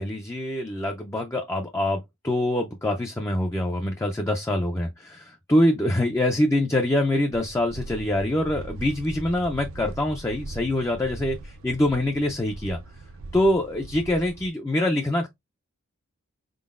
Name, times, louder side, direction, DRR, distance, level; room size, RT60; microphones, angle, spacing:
voice 1, 0.0-12.8 13.3-15.3, left 1 dB, 10° left, 0.4 m, -25 dB
sound 1, 7.3-14.5, right 2 dB, 65° right, 0.5 m, -40 dB
4.3 x 3.8 x 2.4 m
head